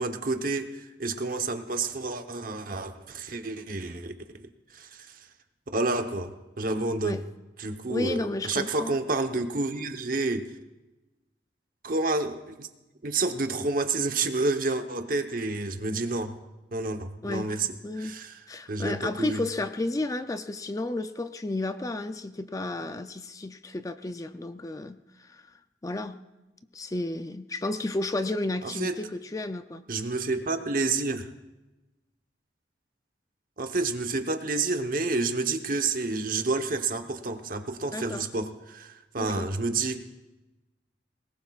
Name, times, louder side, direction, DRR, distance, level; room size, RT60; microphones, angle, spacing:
voice 1, 0.0-5.1 5.7-7.2 7.6-10.5 11.8-12.7 13.0-16.4 16.7-17.7 18.0-18.4 18.7-19.4 28.6-29.0 29.9-31.3 33.6-40.0, right 3 dB, 50° right, 6 dB, 1.0 m, -29 dB
voice 2, 7.9-8.9 17.2-17.5 17.8-18.2 18.5-25.5 25.8-26.2 26.7-29.8 37.9-38.3 39.2-39.5, left 2 dB, 20° left, 10 dB, 0.4 m, -32 dB
22.0 x 19.5 x 2.4 m, 1.1 s
head